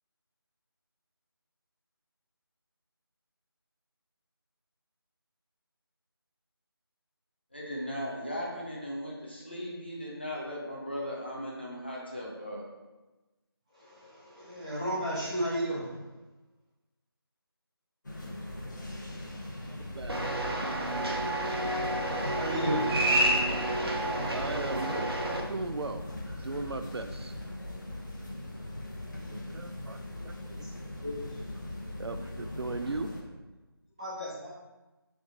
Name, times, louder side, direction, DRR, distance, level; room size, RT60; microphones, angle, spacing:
voice 1, 7.5-12.6, equal, 25° left, -4 dB, 0.7 m, -37 dB
voice 2, 13.7-16.0 22.3-22.9 23.8-23.9 30.6-30.7 31.0-31.5 34.0-34.5, equal, 15° right, -10 dB, 1.0 m, -33 dB
sound 1, 18.0-33.2, left 1 dB, 50° left, 1.0 m, -39 dB
voice 3, 19.8-20.2 23.5-23.8 24.3-25.0 25.5-26.0 26.4-27.3 29.3-30.7 32.0-33.1, right 3 dB, 85° right, 8 dB, 0.4 m, -37 dB
sound 2, 20.1-25.4, right 1 dB, 70° right, 1.0 m, -29 dB
3.8 x 3.5 x 3.9 m, 1.1 s
figure-of-eight pair, 175°, 13 cm